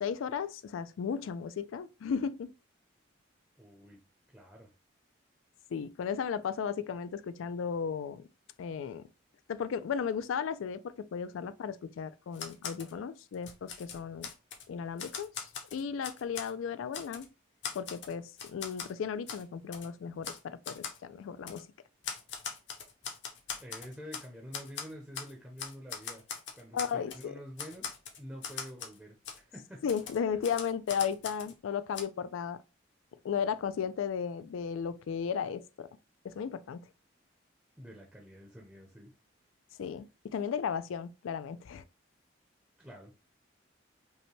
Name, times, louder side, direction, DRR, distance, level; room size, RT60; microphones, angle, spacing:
voice 1, 0.0-2.5 5.7-8.3 8.6-9.1 9.5-14.3 14.7-17.3 17.7-21.7 26.7-27.3 29.8-32.6 33.2-35.9 36.2-36.9 39.8-41.8, left 7 dB, 80° left, 0.3 m, -35 dB
voice 2, 3.6-4.0 4.3-4.7 23.6-26.2 26.5-27.9 28.2-29.8 30.2-30.3 37.8-39.1 42.8-43.1, equal, 10° right, 0.6 m, -48 dB
Typewriter, 12.3-12.9 13.3-14.6 15.0-16.5 16.9-17.3 17.6-18.9 19.3-19.4 19.7-19.9 20.2-20.4 20.6-21.0 21.5-21.6 22.0-24.3 24.5-25.3 25.6-27.2 27.6-29.0 29.2-29.4 29.9-31.5 31.9-32.0, left 6 dB, 60° left, 0.7 m, -41 dB
5.3 x 2.2 x 3.0 m
head